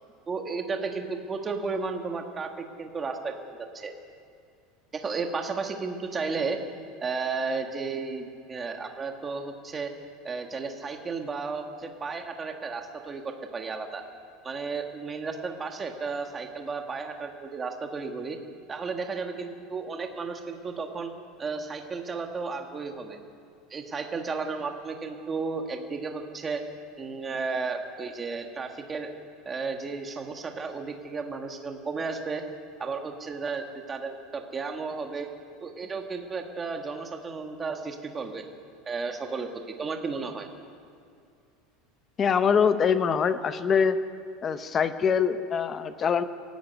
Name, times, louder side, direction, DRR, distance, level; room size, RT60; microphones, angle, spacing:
voice 1, 0.3-3.9 4.9-6.6 7.0-9.9 10.2-14.0 14.4-18.4 18.7-21.1 21.4-23.2 23.7-26.6 27.0-29.1 29.4-32.4 32.8-35.3 35.6-38.5 38.9-40.5, right 4 dB, 15° right, 4 dB, 1.5 m, -33 dB
voice 2, 42.2-44.0 44.4-46.2, left 6 dB, 20° left, 11 dB, 0.8 m, -24 dB
18.5 x 16.0 x 9.4 m, 2.4 s
supercardioid pair, 175°, 0 cm